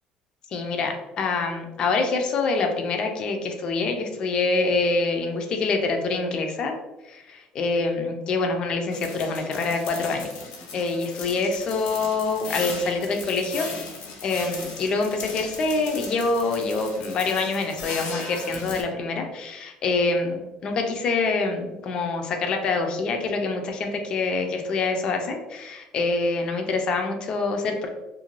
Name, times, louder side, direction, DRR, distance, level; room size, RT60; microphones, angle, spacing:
voice 1, 0.5-6.7 7.1-10.3 10.7-13.7 14.2-27.9, left 3 dB, 45° left, 4 dB, 0.4 m, -25 dB
sound 1, 8.9-18.8, left 4 dB, 85° left, 0.7 m, -37 dB
2.5 x 2.1 x 3.0 m, 1.0 s
cardioid pair, 130°, 2 cm